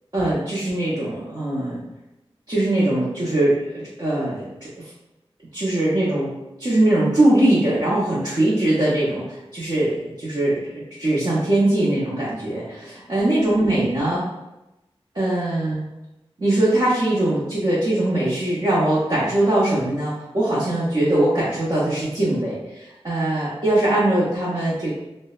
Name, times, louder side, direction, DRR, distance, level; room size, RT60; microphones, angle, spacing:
voice 1, 0.1-1.8 2.5-4.5 5.5-6.3 6.6-14.2 15.1-15.8 16.4-24.9, right 1 dB, 45° right, -9 dB, 0.7 m, -21 dB
2.6 x 2.0 x 2.3 m, 0.97 s
cardioid pair, 40°, 10 cm